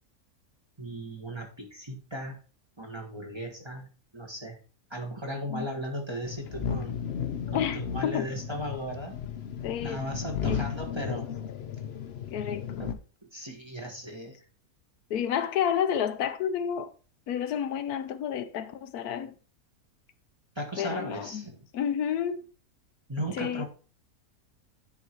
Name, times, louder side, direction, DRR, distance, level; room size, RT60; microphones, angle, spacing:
voice 1, 0.8-2.4 2.8-3.9 4.1-4.6 4.9-7.0 7.5-9.2 9.8-11.3 12.8-12.9 13.3-14.4 20.5-21.7 23.1-23.6, equal, 20° right, 1.2 m, -36 dB
sound 1, 6.2-12.9, left 7 dB, 55° left, 0.8 m, -34 dB
voice 2, 7.5-8.3 9.6-10.0 10.4-10.7 12.3-13.0 15.1-16.9 17.3-19.3 20.8-21.4 21.7-22.4 23.3-23.6, left 9 dB, 80° left, 1.2 m, -30 dB
9.7 x 4.0 x 4.5 m
omnidirectional pair, 1.6 m